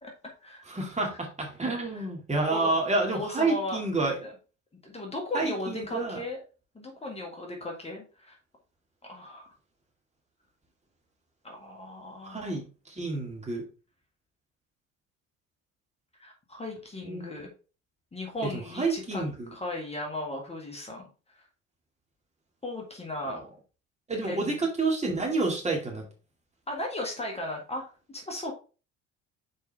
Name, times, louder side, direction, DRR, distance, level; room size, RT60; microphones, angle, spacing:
voice 1, 0.0-0.6 1.9-2.1 2.5-2.7 3.1-3.8 4.2-4.3 4.8-6.4 6.8-8.4 9.1-9.5 11.4-12.4 16.2-17.5 18.1-19.2 19.5-21.1 22.6-23.4 24.3-24.6 26.7-27.8 28.1-28.5, left 1 dB, 15° left, 0 dB, 1.9 m, -36 dB
voice 2, 0.7-4.2 5.3-6.2 12.2-13.7 17.0-17.5 18.5-19.5 23.3-23.4 24.1-26.0, right 3 dB, 15° right, 0 dB, 2.2 m, -29 dB
6.4 x 4.8 x 3.4 m, 0.34 s
figure-of-eight pair, 55°, 39 cm